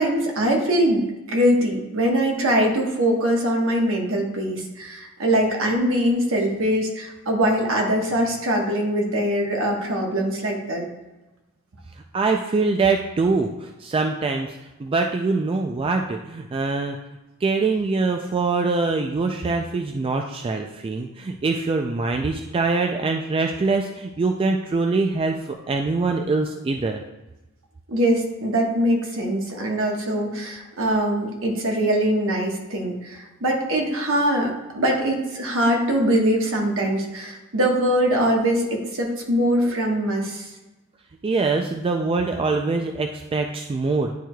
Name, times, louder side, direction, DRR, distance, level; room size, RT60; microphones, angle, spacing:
voice 1, 0.0-10.9 27.9-40.5, equal, 65° right, 1 dB, 1.3 m, -22 dB
voice 2, 12.1-17.0 17.4-27.0 41.2-44.1, right 3 dB, 25° right, 4 dB, 0.3 m, -23 dB
10.0 x 4.6 x 2.2 m, 1.1 s
head